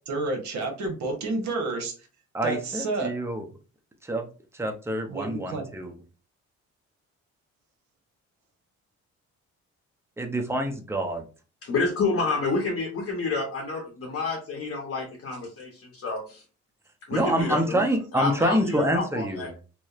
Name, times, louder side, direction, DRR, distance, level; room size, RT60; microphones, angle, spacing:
voice 1, 0.1-1.9 2.4-3.1 5.1-5.7, right 3 dB, 65° right, 4 dB, 0.9 m, -30 dB
voice 2, 2.3-3.4 4.0-4.3 4.5-5.9 10.2-11.3 17.1-19.5, right 1 dB, 10° right, 4 dB, 0.5 m, -26 dB
voice 3, 11.6-16.4 17.1-17.8 18.1-19.5, left 3 dB, 50° left, 0 dB, 0.8 m, -29 dB
2.8 x 2.0 x 2.3 m, 0.35 s
cardioid pair, 90°, 30 cm